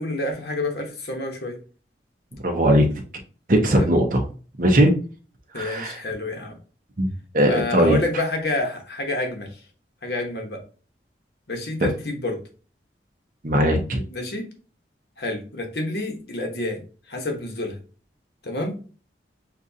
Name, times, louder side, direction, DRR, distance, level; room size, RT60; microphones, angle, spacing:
voice 1, 0.0-1.6 3.7-3.9 5.5-6.6 7.5-9.6 10.0-10.6 11.5-12.4 14.1-14.5 15.2-16.8 17.1-17.8 18.4-18.8, left 2 dB, 65° left, 3 dB, 1.1 m, -28 dB
voice 2, 2.4-2.9 3.5-4.2 4.6-4.9 5.6-6.0 7.0-7.1 7.3-8.0 13.4-14.0, equal, 50° right, 3 dB, 0.9 m, -19 dB
6.8 x 2.5 x 2.7 m, 0.37 s
head